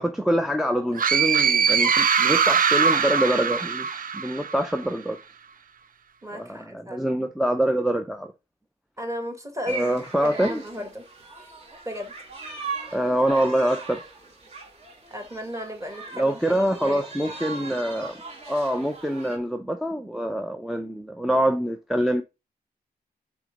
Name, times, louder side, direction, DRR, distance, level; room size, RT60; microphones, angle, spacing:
voice 1, 0.0-5.2 6.3-8.3 9.7-10.8 12.9-14.0 16.1-18.2 18.5-22.2, right 1 dB, ahead, 0.6 m, -25 dB
sound 1, 1.0-4.6, right 6 dB, 55° right, 0.7 m, -21 dB
voice 2, 6.2-7.1 9.0-11.0 11.9-12.1 15.1-17.0, equal, 20° right, 1.9 m, -35 dB
sound 2, 9.7-19.4, right 4 dB, 40° right, 2.4 m, -39 dB
6.1 x 4.3 x 5.2 m
wide cardioid pair, 115°, 17 cm